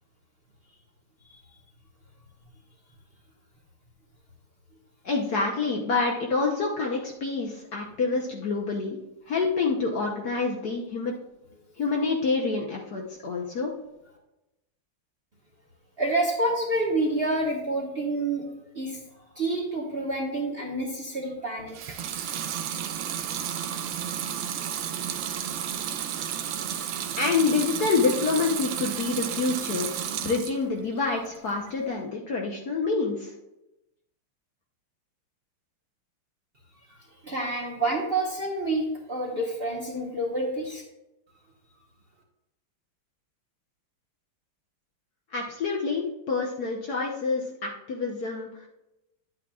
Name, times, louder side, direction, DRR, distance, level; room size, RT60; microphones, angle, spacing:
voice 1, 5.0-9.0 9.3-11.1 11.8-13.7 27.2-29.9 30.2-33.3 45.3-48.5, left 4 dB, 60° left, 0 dB, 1.2 m, -27 dB
voice 2, 16.0-18.4 18.7-19.0 19.4-22.0 37.2-40.8, right 2 dB, 35° right, -2 dB, 1.1 m, -28 dB
Water tap faucet / Sink (filling or washing) / Liquid, 21.7-30.6 31.0-31.7, right 9 dB, 90° right, 1.6 m, -32 dB
10.5 x 8.5 x 2.4 m, 0.92 s
omnidirectional pair, 2.4 m